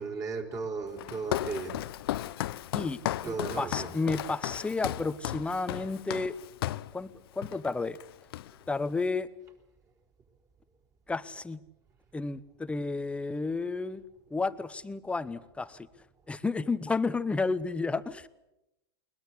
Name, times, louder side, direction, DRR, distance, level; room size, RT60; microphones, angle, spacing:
voice 1, 0.0-1.8 3.2-3.9, right 4 dB, 25° right, 3 dB, 4.7 m, -35 dB
Walk footsteps, 1.0-6.9 7.4-7.7 8.0-8.8, left 14 dB, 70° left, 0.7 m, -35 dB
voice 2, 3.2-6.3 6.9-7.1 7.4-8.0 8.7-9.3 11.1-11.6 12.1-14.0 14.3-15.9 16.3-18.3, left 3 dB, 10° left, 14 dB, 1.0 m, -31 dB
21.5 x 21.0 x 8.3 m, 0.91 s
hypercardioid pair, 115°, 13 cm